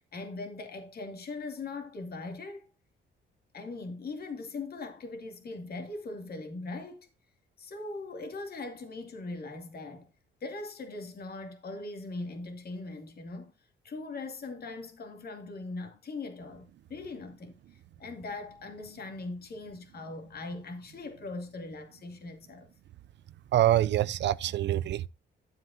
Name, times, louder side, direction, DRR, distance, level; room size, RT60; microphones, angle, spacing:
voice 1, 0.1-2.7 3.5-7.1 7.6-10.1 10.4-13.5 13.8-22.7, left 3 dB, 50° left, 2.6 m, -40 dB
voice 2, 23.5-25.1, right 13 dB, 65° right, 0.5 m, -25 dB
13.5 x 7.7 x 2.7 m
cardioid pair, 90°, 20 cm